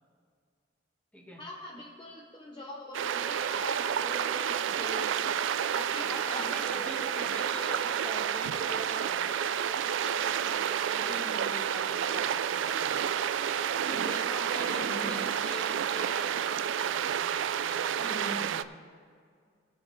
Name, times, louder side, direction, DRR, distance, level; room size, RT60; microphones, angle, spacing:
voice 1, 1.4-5.4 5.7-7.3 11.0-11.5 14.6-15.3 18.0-18.5, left 1 dB, 25° left, -1 dB, 0.8 m, -42 dB
sound 1, 2.9-18.6, right 8 dB, 75° right, 0.3 m, -30 dB
voice 2, 6.0-13.1 13.8-18.7, equal, 10° left, 0 dB, 1.4 m, -44 dB
17.5 x 7.6 x 3.2 m, 2.2 s
head